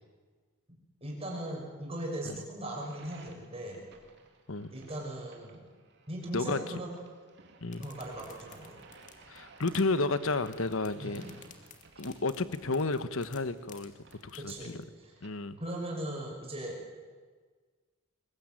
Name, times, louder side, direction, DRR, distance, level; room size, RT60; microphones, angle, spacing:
voice 1, 1.0-3.8 4.7-5.6 6.1-6.9 7.8-8.7 11.0-11.3 14.4-15.1 15.6-16.8, right 1 dB, 25° right, -1 dB, 6.3 m, -39 dB
sound 1, 2.6-15.3, right 3 dB, 50° right, 2.9 m, -57 dB
sound 2, 7.7-14.9, left 6 dB, 35° left, 2.5 m, -56 dB
voice 2, 9.3-11.3 12.0-13.9 14.2-14.8 15.2-15.6, left 3 dB, 65° left, 13 dB, 1.2 m, -32 dB
23.0 x 21.0 x 9.2 m, 1.5 s
head